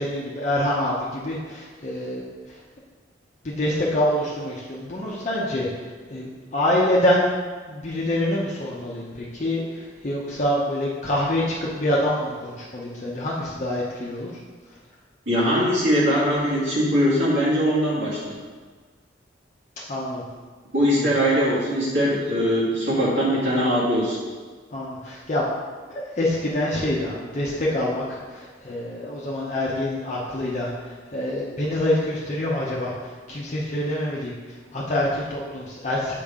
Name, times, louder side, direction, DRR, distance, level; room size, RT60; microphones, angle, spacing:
voice 1, 0.0-2.2 2.5-2.6 3.4-5.7 6.1-7.3 7.7-14.3 19.9-20.2 21.0-21.1 24.7-25.5 25.9-34.3 34.7-36.1, left 1 dB, 40° left, -5 dB, 0.7 m, -26 dB
voice 2, 15.3-18.3 20.7-24.2, equal, 75° right, -7 dB, 2.0 m, -21 dB
7.1 x 4.7 x 3.6 m, 1.5 s
head